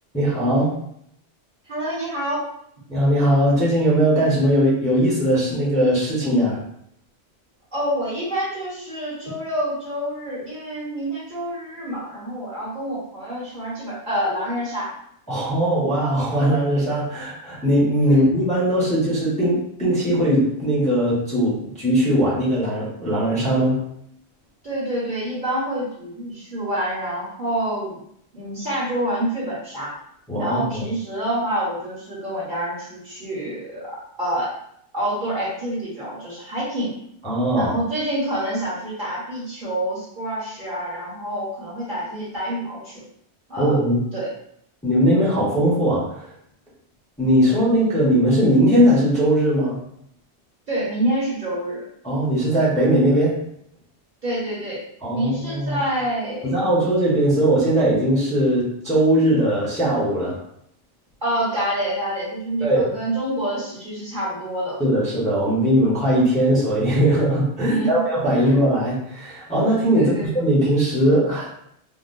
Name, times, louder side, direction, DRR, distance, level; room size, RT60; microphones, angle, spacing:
voice 1, 0.1-0.7 2.9-6.6 15.3-23.8 30.3-30.8 37.2-37.7 43.6-44.0 44.8-46.3 47.2-49.8 52.0-53.4 55.0-55.8 56.4-60.4 62.6-62.9 64.8-71.5, right 1 dB, 5° left, -8 dB, 1.0 m, -19 dB
voice 2, 1.7-2.4 7.7-14.9 18.0-18.2 24.6-28.0 28.3-29.9 30.4-34.5 34.9-37.0 37.5-43.0 43.5-43.7 44.1-44.3 50.7-51.8 54.2-54.8 55.1-56.5 61.2-64.8 67.6-68.0 68.3-68.6 69.9-70.3, right 1 dB, 45° right, -7 dB, 1.3 m, -27 dB
3.7 x 2.4 x 2.6 m, 0.70 s
omnidirectional pair, 1.2 m